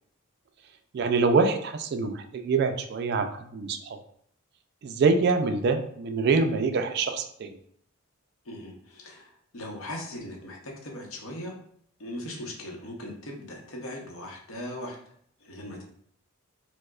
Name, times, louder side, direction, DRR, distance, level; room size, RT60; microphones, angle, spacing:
voice 1, 0.9-4.0 4.8-7.5, right 4 dB, 50° right, 7 dB, 0.3 m, -25 dB
voice 2, 8.4-11.5 12.0-15.0 15.4-15.8, left 1 dB, 75° left, 1 dB, 0.8 m, -39 dB
4.5 x 2.1 x 2.3 m, 0.64 s
head